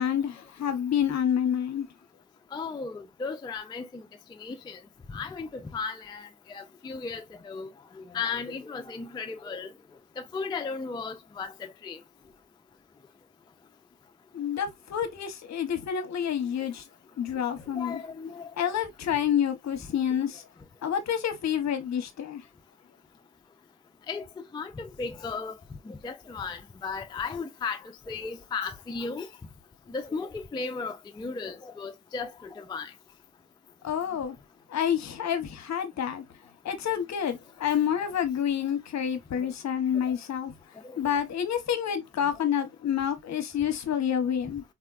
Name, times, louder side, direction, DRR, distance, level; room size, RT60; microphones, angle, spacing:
voice 1, 0.0-1.8 14.3-16.8 17.2-18.0 18.6-20.4 20.8-22.4 33.8-34.3 34.7-36.2 36.6-40.5 41.0-44.6, left 9 dB, 50° left, 0.8 m, -28 dB
voice 2, 2.5-4.0 4.4-4.8 5.1-7.7 8.0-9.7 10.2-12.0 17.8-18.5 24.1-24.2 24.5-25.5 25.9-29.3 29.9-32.9 39.4-39.5 40.8-41.0, left 4 dB, 15° left, 0.3 m, -35 dB
4.1 x 2.1 x 2.2 m
supercardioid pair, 75°, 35 cm